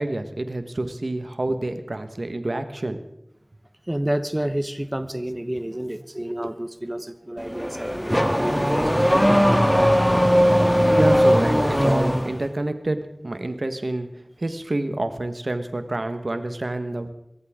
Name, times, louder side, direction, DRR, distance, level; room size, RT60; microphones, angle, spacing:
voice 1, 0.0-3.0 10.9-14.1 14.4-17.1, right 2 dB, 85° right, 1.2 m, -28 dB
voice 2, 3.9-9.9 10.8-10.9, right 1 dB, 30° right, 0.9 m, -30 dB
Car / Accelerating revving vroom, 7.4-12.4, equal, 5° left, 1.5 m, -19 dB
24.0 x 14.0 x 3.6 m
wide cardioid pair, 45°, 0 cm